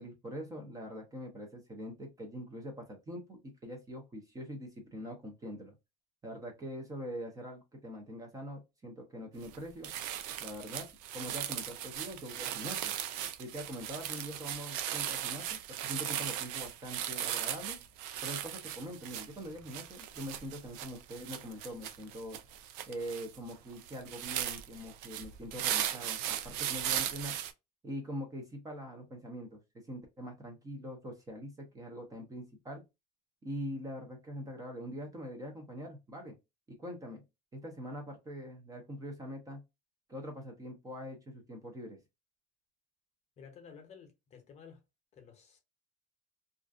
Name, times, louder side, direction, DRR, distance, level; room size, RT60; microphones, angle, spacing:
voice 1, 0.0-5.7 6.2-9.9 10.4-12.9 13.4-17.8 18.2-22.4 22.9-27.4 27.8-32.8 33.4-36.4 36.7-37.2 37.5-39.6 40.1-42.0, equal, 15° right, 0.6 m, -43 dB
sound 1, 9.4-9.6 9.8-27.5, right 11 dB, 80° right, 0.5 m, -38 dB
voice 2, 43.4-44.8 45.1-45.6, left 6 dB, 35° left, 0.8 m, -53 dB
2.5 x 2.3 x 2.3 m
cardioid pair, 140°, 20 cm